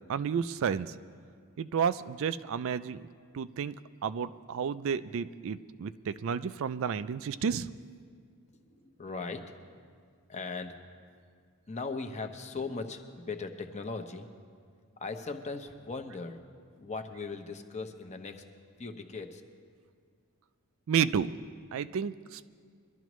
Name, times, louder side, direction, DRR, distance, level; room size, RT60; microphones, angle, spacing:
voice 1, 0.1-0.9 1.6-3.0 3.3-3.7 4.0-7.7 20.9-21.3 21.7-22.5, right 7 dB, 60° right, 13 dB, 0.4 m, -31 dB
voice 2, 8.5-9.7 10.3-10.7 11.7-14.3 15.0-16.4 16.8-18.4 18.8-19.4, left 4 dB, 30° left, 6 dB, 0.8 m, -39 dB
22.5 x 12.0 x 3.1 m, 2.1 s
head